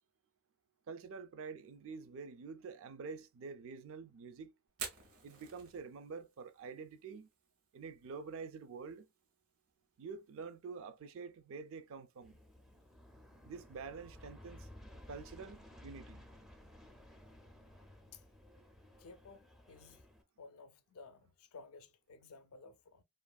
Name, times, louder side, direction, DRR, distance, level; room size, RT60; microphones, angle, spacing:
voice 1, 0.9-4.5 5.2-7.3 7.7-9.1 10.0-12.4 13.4-14.7 15.1-16.3, right 5 dB, 65° right, 0.4 m, -47 dB
Fire, 4.7-18.5, right 5 dB, 90° right, 1.0 m, -56 dB
Aircraft, 12.2-20.2, left 1 dB, ahead, 0.4 m, -56 dB
voice 2, 19.0-20.1 20.4-23.0, left 4 dB, 70° left, 0.4 m, -55 dB
2.9 x 2.4 x 2.2 m
head